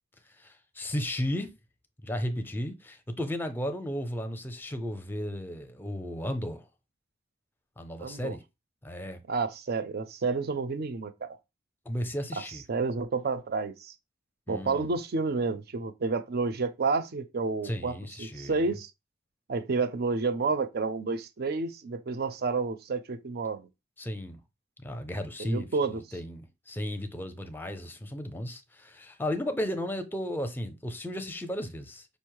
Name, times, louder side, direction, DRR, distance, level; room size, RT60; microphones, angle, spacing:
voice 1, 0.4-1.5 2.0-6.6 7.8-8.4 8.8-9.2 11.9-12.6 14.5-14.9 17.6-18.7 24.0-24.4 24.8-32.1, equal, 10° left, 0.5 m, -34 dB
voice 2, 8.0-8.4 9.3-11.4 12.4-13.9 14.5-18.9 19.5-23.7 25.4-26.0, right 4 dB, 55° right, 0.5 m, -30 dB
5.3 x 2.0 x 4.6 m
head